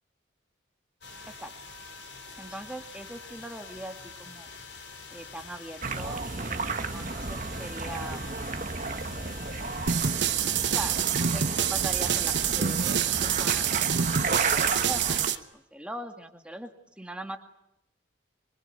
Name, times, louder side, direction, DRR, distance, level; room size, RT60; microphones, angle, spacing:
sound 1, 1.0-15.4, left 5 dB, 60° left, 4.0 m, -45 dB
voice 1, 2.4-4.5 5.1-8.2 9.2-10.1 10.7-12.9 13.2-16.7 17.0-17.4, right 1 dB, 5° right, 5 dB, 2.2 m, -41 dB
sound 2, 5.8-15.3, right 4 dB, 40° right, 1.6 m, -33 dB
sound 3, 9.9-15.3, right 8 dB, 65° right, 1.0 m, -26 dB
26.0 x 25.5 x 8.2 m, 0.82 s
head